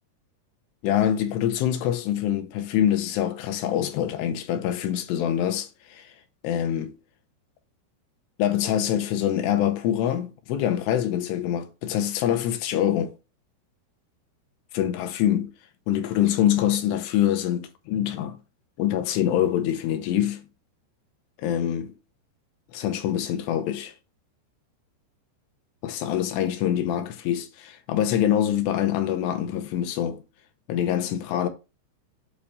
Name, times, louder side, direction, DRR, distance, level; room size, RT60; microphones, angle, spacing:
voice 1, 0.8-6.1 6.4-6.9 8.4-13.1 14.7-15.5 15.9-18.4 18.8-20.4 21.4-21.9 22.7-23.9 25.8-30.2 30.7-31.5, left 10 dB, 80° left, 2.9 m, -25 dB
8.5 x 3.3 x 5.0 m
omnidirectional pair, 5.0 m